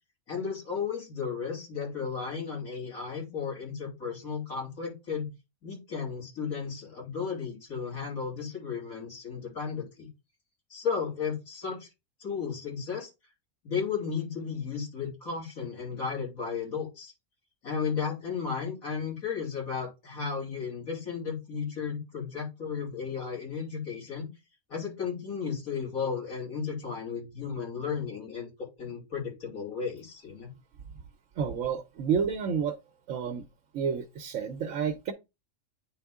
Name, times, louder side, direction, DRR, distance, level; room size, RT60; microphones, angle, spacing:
voice 1, 0.3-5.3 5.6-10.1 10.7-11.9 12.2-13.1 13.6-17.1 17.6-24.3 24.7-28.5 28.8-30.5, left 6 dB, 80° left, 3.7 m, -34 dB
voice 2, 31.4-32.8 33.1-33.4 33.7-35.1, right 7 dB, 70° right, 1.0 m, -30 dB
9.1 x 3.5 x 3.5 m
omnidirectional pair, 1.5 m